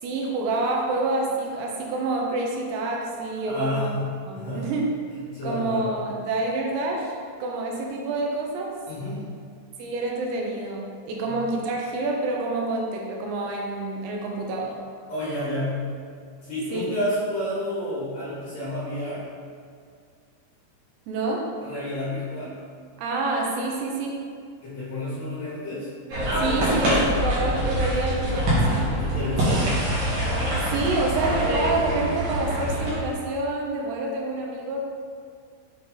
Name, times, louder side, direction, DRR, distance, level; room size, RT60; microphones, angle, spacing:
voice 1, 0.0-3.9 4.3-4.9 5.4-7.1 7.4-8.7 9.8-14.8 16.7-16.9 21.1-21.5 23.0-24.2 26.4-28.9 30.7-34.8, right 2 dB, 80° right, -1 dB, 2.5 m, -27 dB
voice 2, 3.5-4.1 4.3-4.7 5.3-5.9 8.9-9.2 11.2-11.4 15.1-15.8 16.4-19.2 21.6-22.6 24.6-25.9 26.4-27.0 28.7-29.8, left 1 dB, 80° left, -10 dB, 1.5 m, -30 dB
sound 1, 26.1-33.0, equal, 60° right, 2.7 m, -24 dB
6.8 x 3.9 x 3.8 m, 2.2 s
omnidirectional pair, 5.2 m